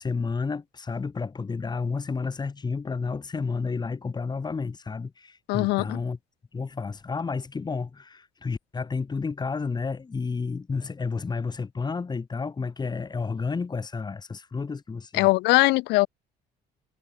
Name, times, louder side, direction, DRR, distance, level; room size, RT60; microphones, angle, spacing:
voice 1, 0.0-6.2 6.5-15.3, left 4 dB, 25° left, 2.5 m, -31 dB
voice 2, 5.5-6.0 15.1-16.1, left 22 dB, 85° left, 0.4 m, -21 dB
cardioid pair, 110°, 17 cm